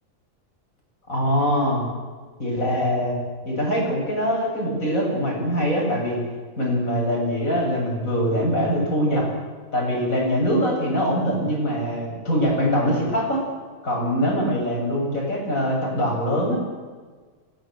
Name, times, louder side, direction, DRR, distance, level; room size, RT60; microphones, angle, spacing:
voice 1, 1.1-1.9 2.4-3.2 3.4-6.2 6.6-9.3 9.7-13.5 13.8-16.6, equal, 85° left, -1 dB, 8.4 m, -23 dB
28.5 x 17.5 x 7.8 m, 1.4 s
omnidirectional pair, 1.4 m